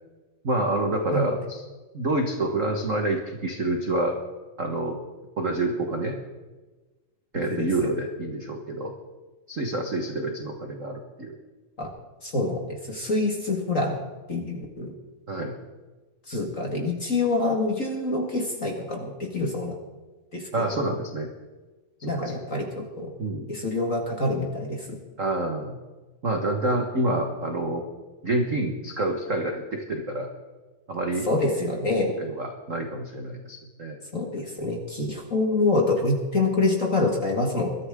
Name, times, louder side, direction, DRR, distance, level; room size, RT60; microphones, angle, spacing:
voice 1, 0.4-1.6 1.9-4.2 4.6-5.0 5.4-6.2 7.3-8.9 9.5-11.3 15.3-15.5 20.5-21.3 22.2-22.4 23.2-23.5 25.2-25.8 26.2-27.9 28.2-30.3 30.9-31.3 32.2-34.0, right 2 dB, 55° right, 3 dB, 0.8 m, -27 dB
voice 2, 7.3-7.9 11.8-11.9 12.2-14.0 14.3-14.9 16.3-19.8 20.3-20.8 22.0-23.1 23.5-25.0 31.3-32.1 34.1-37.8, left 2 dB, 30° left, 1 dB, 1.6 m, -26 dB
22.0 x 13.5 x 3.7 m, 1.2 s
omnidirectional pair, 3.7 m